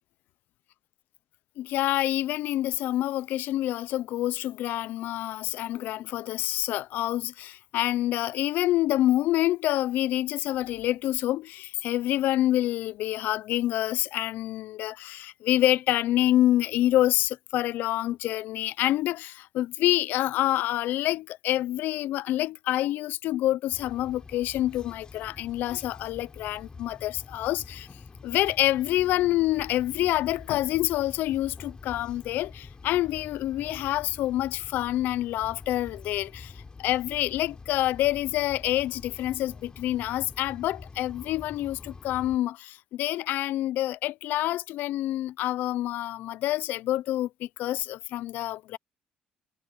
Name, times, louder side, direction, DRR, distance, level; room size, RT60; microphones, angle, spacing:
voice 1, 1.6-27.9 28.2-48.8, left 14 dB, 75° left, 0.5 m, -27 dB
sound 1, 23.7-42.4, left 4 dB, 25° left, 7.6 m, -46 dB
cardioid pair, 95°, 3 cm